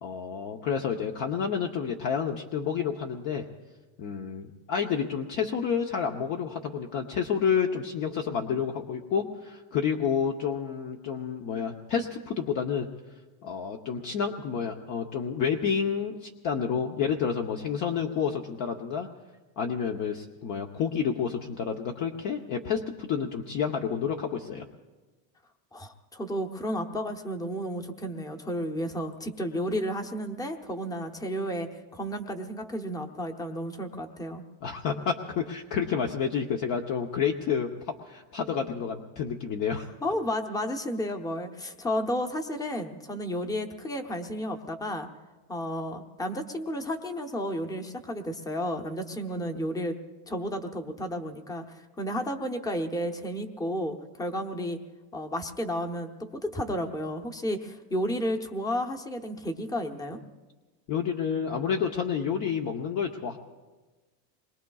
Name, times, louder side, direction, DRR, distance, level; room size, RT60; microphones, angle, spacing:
voice 1, 0.0-3.4 4.0-12.9 13.4-19.1 19.6-24.6 34.6-37.7 38.0-39.8 60.9-63.4, left 7 dB, 45° left, 3 dB, 0.9 m, -29 dB
voice 2, 25.7-34.4 40.0-45.1 45.5-50.0 50.3-54.8 55.1-60.2, equal, 10° left, 4 dB, 0.9 m, -32 dB
27.5 x 22.0 x 2.4 m, 1.2 s
cardioid pair, 140°, 44 cm